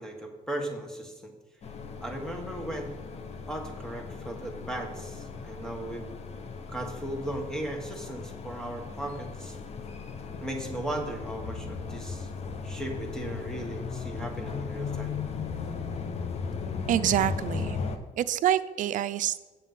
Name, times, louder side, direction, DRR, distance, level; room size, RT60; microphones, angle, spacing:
voice 1, 0.0-1.3 2.0-2.9 3.5-6.1 6.7-9.6 10.4-12.3 12.6-15.1, right 1 dB, 5° left, 3 dB, 1.6 m, -37 dB
sound 1, 1.6-18.0, left 5 dB, 45° left, 0.9 m, -37 dB
voice 2, 16.9-17.8 18.2-19.4, right 11 dB, 60° right, 12 dB, 0.5 m, -26 dB
7.7 x 7.3 x 5.6 m, 1.2 s
cardioid pair, 110°, 15 cm